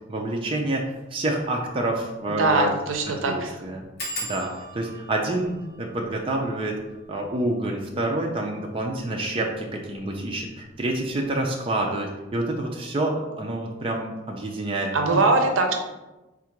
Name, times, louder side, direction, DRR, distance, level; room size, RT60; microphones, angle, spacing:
voice 1, 0.1-2.8 3.1-3.8 4.2-6.8 7.1-15.2, right 1 dB, 25° right, 0 dB, 0.4 m, -28 dB
sound 1, 0.8-1.0 1.4-1.5 1.7-1.8 2.4-2.7 2.9-3.0 4.0-9.2 9.9-10.4 10.8-11.1 11.4-11.5, equal, 50° left, 1.0 m, -40 dB
voice 2, 2.3-3.6 14.9-15.7, right 3 dB, 75° right, 4 dB, 0.6 m, -22 dB
3.6 x 2.5 x 4.4 m, 1.0 s
head